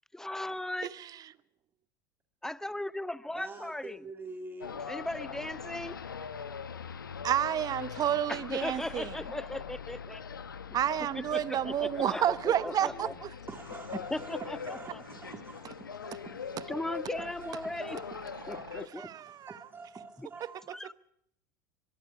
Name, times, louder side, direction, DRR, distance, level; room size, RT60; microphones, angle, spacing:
voice 1, 0.1-0.9 2.4-4.0 4.9-6.0 8.3-10.2 10.7-10.8 11.1-13.1 13.9-15.0 16.7-18.0 18.5-19.1 20.2-20.3 20.6-20.9, left 1 dB, 5° left, 0.8 m, -37 dB
voice 2, 3.4-4.7 11.9-13.1 13.5-16.8 17.2-20.8, right 4 dB, 20° right, 2.1 m, -47 dB
sound 1, 4.6-18.9, left 6 dB, 85° left, 1.2 m, -42 dB
voice 3, 7.2-9.1 10.7-13.3 18.7-19.7, right 10 dB, 35° right, 0.9 m, -30 dB
23.5 x 23.0 x 4.9 m
figure-of-eight pair, 75°, 11 cm